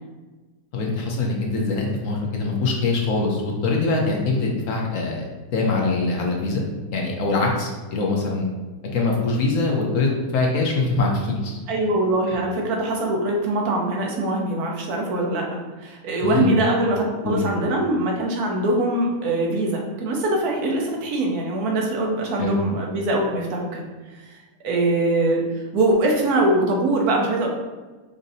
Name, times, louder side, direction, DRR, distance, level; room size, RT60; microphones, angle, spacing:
voice 1, 0.7-6.6 6.9-8.5 8.9-11.6 12.3-12.4 16.2-16.5 17.2-17.4 22.4-22.6, left 3 dB, 65° left, 0 dB, 1.0 m, -23 dB
voice 2, 11.7-23.8 24.2-24.4 24.6-27.5, right 2 dB, 85° right, -1 dB, 1.3 m, -23 dB
5.1 x 2.7 x 2.7 m, 1.2 s
omnidirectional pair, 1.6 m